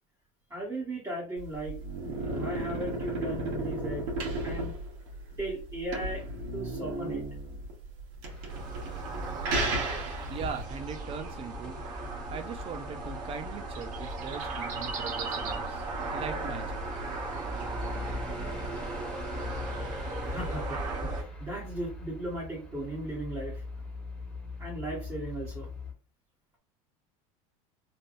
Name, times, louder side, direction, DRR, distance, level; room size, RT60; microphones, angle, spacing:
voice 1, 0.5-1.8 2.2-4.1 4.4-4.7 5.4-6.2 6.5-7.3 20.2-23.6 24.6-25.7, right 1 dB, 20° right, -7 dB, 1.6 m, -37 dB
sound 1, 1.4-10.6, right 2 dB, 70° right, 1.5 m, -34 dB
Truck / Idling, 8.2-25.9, left 3 dB, 5° left, 1.6 m, -43 dB
sound 2, 8.5-21.2, right 3 dB, 50° right, 1.0 m, -36 dB
voice 2, 10.3-11.8 12.3-15.9 16.1-16.8, right 7 dB, 35° right, 7 dB, 0.7 m, -40 dB
3.4 x 2.7 x 2.6 m, 0.35 s
supercardioid pair, 125°, 17 cm